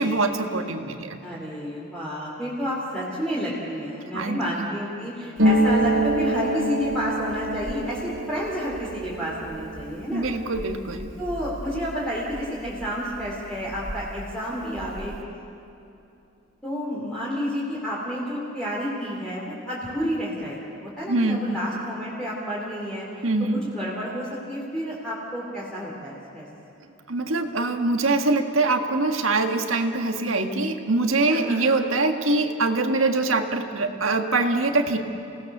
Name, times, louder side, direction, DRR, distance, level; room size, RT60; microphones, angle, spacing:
voice 1, 0.0-1.2 4.1-4.7 10.1-11.1 21.1-21.6 23.2-23.6 27.1-35.0, right 2 dB, 85° right, 5 dB, 1.7 m, -23 dB
voice 2, 1.2-10.2 11.2-15.2 16.6-23.2 23.5-26.5 31.3-31.6, equal, 5° left, -7 dB, 3.1 m, -30 dB
Harp, 5.4-12.9 13.1-14.2 14.5-15.1, right 1 dB, 70° right, 2.8 m, -27 dB
28.5 x 18.0 x 6.8 m, 2.8 s
head